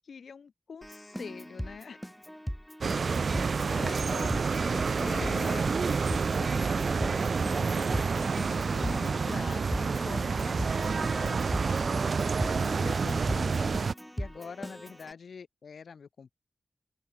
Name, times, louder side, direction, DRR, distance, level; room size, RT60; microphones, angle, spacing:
voice 1, 0.1-2.0 3.6-6.0 6.4-11.4 12.4-13.9 14.2-16.3, left 6 dB, 90° left, 2.3 m, -44 dB
Keyboard (musical), 0.8-15.1, equal, 5° left, 0.7 m, -39 dB
sound 1, 2.8-13.9, right 5 dB, 70° right, 0.4 m, -28 dB
open air
wide cardioid pair, 75°, 0 cm